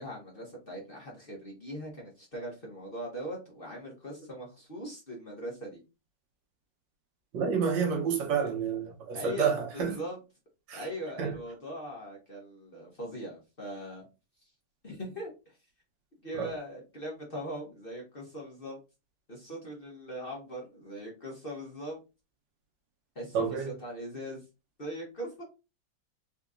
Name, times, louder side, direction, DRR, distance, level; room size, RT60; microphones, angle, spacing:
voice 1, 0.0-5.8 9.1-10.2 10.7-14.0 14.8-15.3 16.2-18.8 19.3-22.0 23.1-24.4 24.8-25.4, equal, 40° left, 1.0 m, -40 dB
voice 2, 7.3-10.0 10.7-10.9 11.2-11.3 16.3-16.5 23.3-23.8, right 6 dB, 85° right, 1.5 m, -29 dB
4.0 x 2.9 x 2.4 m
omnidirectional pair, 2.0 m